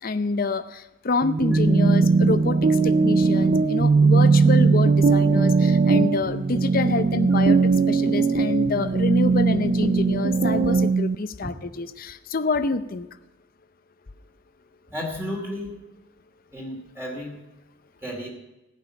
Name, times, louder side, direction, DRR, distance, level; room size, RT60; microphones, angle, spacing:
voice 1, 0.0-13.1, left 3 dB, 45° left, 12 dB, 0.6 m, -27 dB
sound 1, 1.2-11.2, right 4 dB, 40° right, 0.3 m, -19 dB
voice 2, 14.9-15.8 16.5-17.3 18.0-18.3, left 1 dB, 10° right, -2 dB, 2.5 m, -32 dB
15.5 x 5.6 x 8.8 m, 1.0 s
head